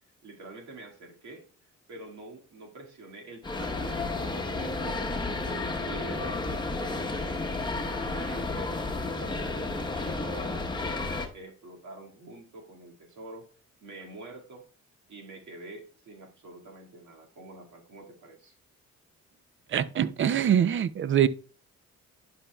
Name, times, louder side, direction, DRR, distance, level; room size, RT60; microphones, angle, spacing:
voice 1, 0.2-1.5 1.9-3.7 4.1-7.5 8.0-13.5 13.8-14.7 15.1-18.6, right 2 dB, 70° right, 2.1 m, -46 dB
sound 1, 3.4-11.3, left 3 dB, 15° left, 1.0 m, -32 dB
voice 2, 19.7-21.3, right 9 dB, 40° right, 0.5 m, -24 dB
11.0 x 5.6 x 2.2 m
cardioid pair, 90°, 30 cm